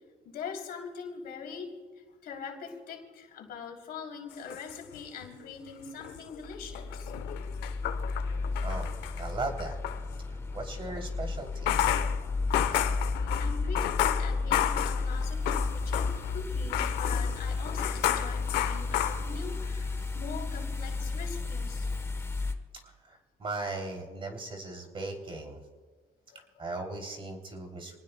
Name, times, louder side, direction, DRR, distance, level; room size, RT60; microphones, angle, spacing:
voice 1, 0.3-1.8 2.2-7.1 13.4-21.9 26.3-26.7, left 5 dB, 65° left, 2 dB, 3.1 m, -42 dB
sound 1, 4.3-5.5 5.9-10.0 11.5-16.4 16.7-19.7, left 12 dB, 85° left, 0.9 m, -32 dB
sound 2, 6.4-22.5, left 3 dB, 15° left, 1.1 m, -33 dB
voice 2, 9.2-9.8 10.5-11.7 22.8-25.6 26.6-28.0, right 2 dB, 30° right, 3 dB, 3.0 m, -37 dB
26.5 x 19.0 x 2.2 m, 1.4 s
cardioid pair, 110°, 17 cm